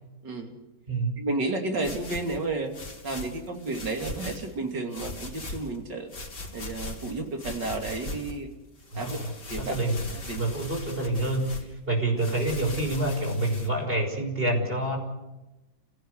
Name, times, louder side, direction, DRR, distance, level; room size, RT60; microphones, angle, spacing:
voice 1, 0.2-0.5 1.2-2.7 3.0-6.1 6.5-8.5 9.0-9.2 9.5-9.7 10.3-10.5, right 2 dB, 80° right, 3 dB, 3.5 m, -31 dB
voice 2, 0.9-1.2 8.9-10.1 10.3-15.0, right 2 dB, 30° right, 2 dB, 5.9 m, -27 dB
sound 1, 1.7-4.5 4.9-5.8 6.1-8.4 8.8-11.7 12.2-13.7, left 2 dB, 80° left, 4.1 m, -40 dB
29.5 x 17.0 x 8.2 m, 1.0 s
omnidirectional pair, 1.9 m